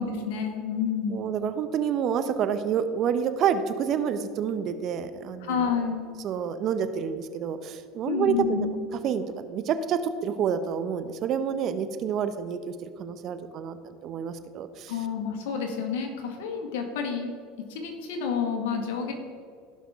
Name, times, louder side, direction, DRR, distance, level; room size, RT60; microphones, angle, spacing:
voice 1, 0.0-1.2 5.4-6.1 8.1-8.8 14.9-17.3 17.7-19.1, left 6 dB, 75° left, 3 dB, 1.8 m, -29 dB
voice 2, 1.1-5.7 6.2-8.7 9.0-14.9, right 7 dB, 50° right, 10 dB, 0.8 m, -28 dB
16.5 x 5.8 x 3.7 m, 2.2 s
hypercardioid pair, 85°, 0 cm